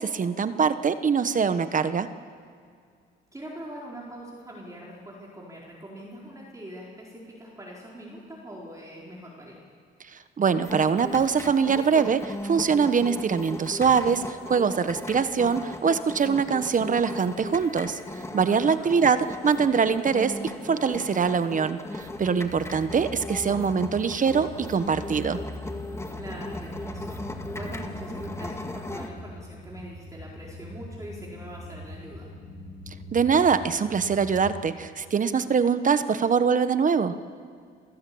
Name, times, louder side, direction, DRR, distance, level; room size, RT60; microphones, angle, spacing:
voice 1, 0.0-2.1 10.1-18.0 18.3-25.4 33.1-37.2, right 6 dB, 40° right, 11 dB, 1.2 m, -23 dB
voice 2, 3.3-9.6 18.5-18.9 26.1-32.3, equal, 15° right, -4 dB, 4.5 m, -42 dB
sound 1, 10.6-29.1, left 2 dB, 15° left, 1.9 m, -38 dB
sound 2, 22.0-34.7, left 1 dB, 85° left, 7.8 m, -42 dB
27.5 x 15.0 x 8.7 m, 2.1 s
cardioid pair, 90°, 20 cm